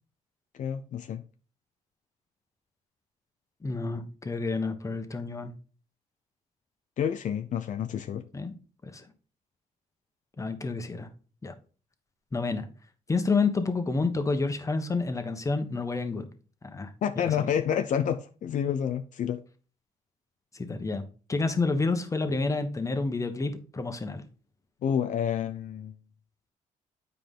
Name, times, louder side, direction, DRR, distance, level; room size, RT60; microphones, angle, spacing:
voice 1, 0.6-1.2 7.0-8.2 17.0-19.4 24.8-25.9, left 8 dB, 65° left, 0.6 m, -29 dB
voice 2, 3.6-5.5 8.3-8.5 8.8-9.1 10.4-11.1 11.4-11.5 12.3-12.7 13.1-16.3 16.6-17.5 20.5-21.0 21.3-24.2, left 3 dB, 20° left, 1.3 m, -29 dB
9.2 x 4.9 x 3.8 m
cardioid pair, 100°, 14 cm